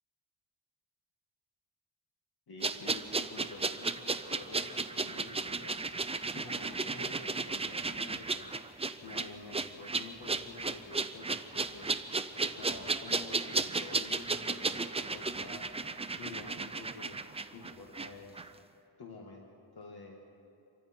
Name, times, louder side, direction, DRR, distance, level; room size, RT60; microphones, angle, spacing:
voice 1, 2.5-3.9 4.3-5.8 6.3-8.5 9.0-11.9 12.4-15.7 16.2-17.2 17.5-18.5 19.0-20.4, left 3 dB, 50° left, 0 dB, 1.8 m, -49 dB
sound 1, 2.6-18.1 18.4-18.5, right 3 dB, 15° right, 0.4 m, -34 dB
27.0 x 24.0 x 4.4 m, 2.7 s
wide cardioid pair, 175°, 47 cm